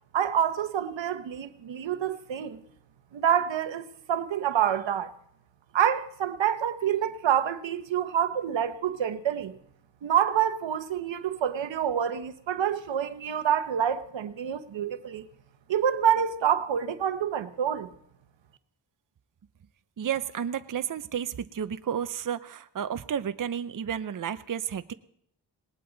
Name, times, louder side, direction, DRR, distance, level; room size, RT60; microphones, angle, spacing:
voice 1, 0.1-2.6 3.1-5.1 5.7-9.6 10.0-15.3 15.7-17.9, right 9 dB, 80° right, 1.0 m, -27 dB
voice 2, 20.0-24.9, right 8 dB, 45° right, 0.7 m, -32 dB
19.5 x 18.5 x 4.0 m
cardioid pair, 55°, 44 cm